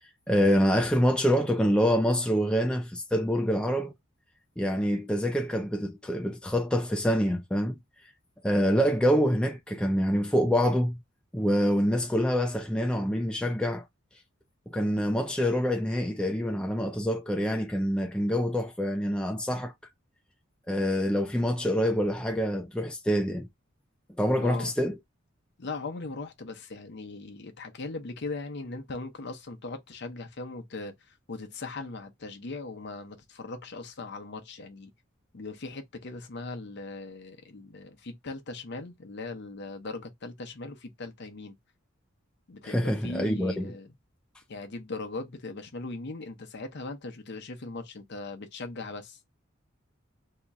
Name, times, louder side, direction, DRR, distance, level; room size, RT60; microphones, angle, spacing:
voice 1, 0.3-3.9 4.6-7.8 8.4-11.0 11.3-13.8 14.7-19.7 20.7-23.5 24.2-25.0 42.6-43.7, equal, 5° left, 0.4 m, -26 dB
voice 2, 24.4-24.7 25.6-34.9 35.3-41.5 42.5-43.9 44.5-49.2, left 3 dB, 55° left, 0.7 m, -39 dB
2.8 x 2.4 x 4.1 m
head